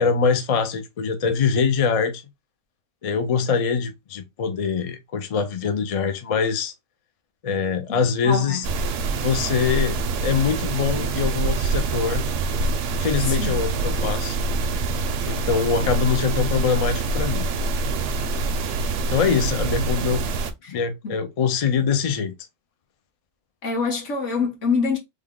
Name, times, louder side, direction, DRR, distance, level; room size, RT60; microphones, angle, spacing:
voice 1, 0.0-2.2 3.0-6.7 7.4-8.7 9.2-12.2 13.0-14.4 15.2-17.5 19.1-20.3 20.7-22.3, left 6 dB, 50° left, 0.4 m, -23 dB
voice 2, 7.9-8.7 13.2-13.5 20.6-20.7 21.0-21.2 23.6-25.0, left 4 dB, 75° left, 1.5 m, -26 dB
sound 1, 8.6-20.5, right 3 dB, 75° right, 0.9 m, -25 dB
3.4 x 2.2 x 3.6 m
omnidirectional pair, 1.3 m